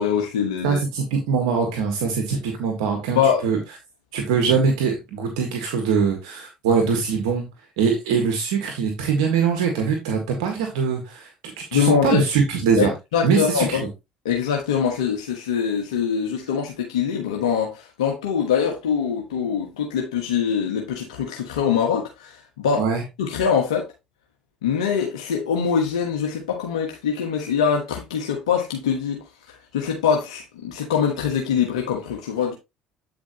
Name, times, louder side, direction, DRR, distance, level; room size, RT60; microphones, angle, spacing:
voice 1, 0.0-0.8 3.1-3.4 11.7-12.2 12.8-13.8 14.2-22.8 23.2-23.9 24.6-29.2 29.7-32.5, left 7 dB, 85° left, 1.3 m, -23 dB
voice 2, 0.6-3.6 4.1-7.5 7.8-11.3 11.6-12.9 13.2-13.8 22.8-23.0, right 6 dB, 80° right, 1.6 m, -22 dB
8.7 x 5.0 x 3.0 m
hypercardioid pair, 60°, 3 cm